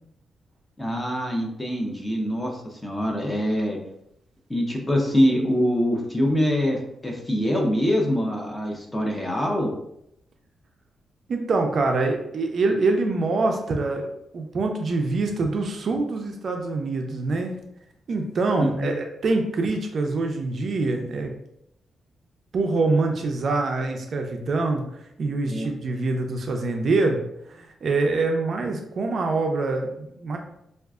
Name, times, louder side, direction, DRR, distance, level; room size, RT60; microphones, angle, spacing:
voice 1, 0.8-3.8 4.5-9.7 18.6-18.9 25.5-25.7, equal, 10° left, 0 dB, 0.5 m, -24 dB
voice 2, 11.3-14.1 14.3-17.5 18.1-21.3 22.5-27.2 27.5-30.4, right 3 dB, 45° right, 3 dB, 0.4 m, -25 dB
4.5 x 2.3 x 2.4 m, 0.78 s
wide cardioid pair, 175°, 0 cm